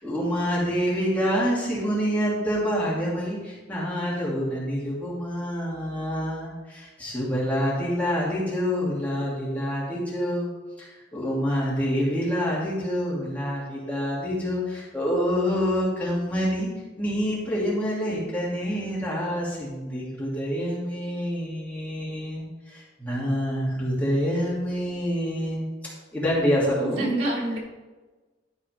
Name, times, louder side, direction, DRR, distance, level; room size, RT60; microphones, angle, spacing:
voice 1, 0.0-10.5 10.8-16.7 17.0-27.1, equal, 10° left, -7 dB, 2.9 m, -27 dB
voice 2, 26.8-27.6, right 1 dB, 85° right, -6 dB, 3.5 m, -27 dB
12.5 x 4.8 x 5.3 m, 1.2 s
head